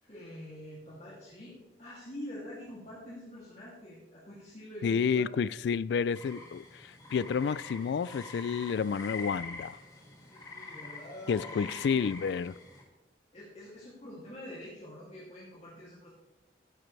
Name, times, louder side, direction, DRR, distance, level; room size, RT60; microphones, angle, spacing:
voice 1, 0.0-5.4 10.2-12.1 13.3-16.1, left 1 dB, 40° left, 2.6 m, -46 dB
voice 2, 4.8-9.8 11.3-12.5, left 6 dB, 75° left, 0.3 m, -30 dB
sound 1, 6.2-12.8, left 3 dB, 20° left, 2.4 m, -45 dB
14.0 x 10.5 x 3.3 m
head